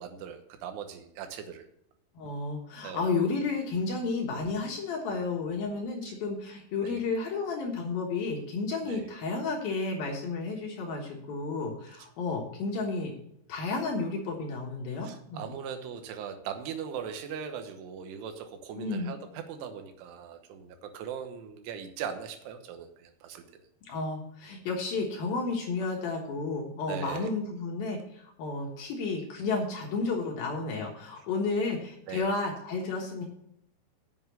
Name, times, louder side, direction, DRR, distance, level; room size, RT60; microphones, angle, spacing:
voice 1, 0.0-1.7 2.8-3.1 6.8-7.0 8.9-9.1 15.0-23.4 26.9-27.3 31.2-31.3 32.1-32.3, right 7 dB, 85° right, 7 dB, 3.5 m, -39 dB
voice 2, 2.2-13.1 13.5-15.5 18.8-19.1 23.9-33.3, left 3 dB, 65° left, 0 dB, 2.6 m, -32 dB
8.2 x 7.4 x 6.9 m, 0.74 s
omnidirectional pair, 5.5 m